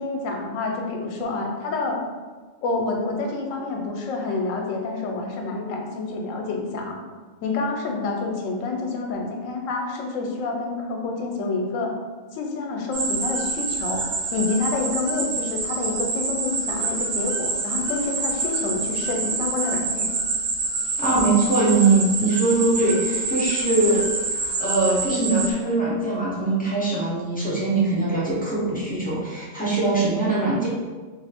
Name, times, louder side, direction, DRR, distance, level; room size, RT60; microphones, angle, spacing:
voice 1, 0.0-2.0 2.6-7.0 7.4-11.9 12.3-14.0 14.3-20.1, left 3 dB, 80° left, 2 dB, 1.0 m, -28 dB
sound 1, 12.9-25.5, right 3 dB, 65° right, 0.6 m, -27 dB
voice 2, 21.0-24.0 24.4-30.7, right 3 dB, 10° left, -7 dB, 0.6 m, -22 dB
3.1 x 2.5 x 3.4 m, 1.4 s
omnidirectional pair, 1.4 m